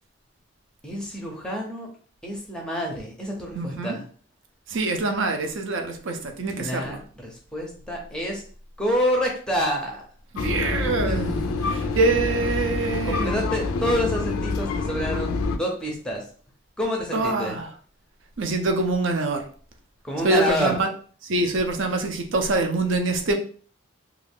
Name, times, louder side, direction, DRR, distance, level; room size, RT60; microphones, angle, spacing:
voice 1, 0.8-1.9 2.2-4.0 6.5-8.4 8.8-10.1 11.1-11.2 13.0-16.2 16.8-17.5 20.0-20.7, equal, 5° left, 0.5 m, -28 dB
voice 2, 3.5-4.0 4.7-7.0 10.3-13.4 17.1-17.7 18.4-19.5 20.2-20.9 21.2-23.3, right 2 dB, 65° right, 0.5 m, -25 dB
sound 1, 10.4-15.6, left 3 dB, 90° left, 0.4 m, -27 dB
2.4 x 2.3 x 3.4 m
head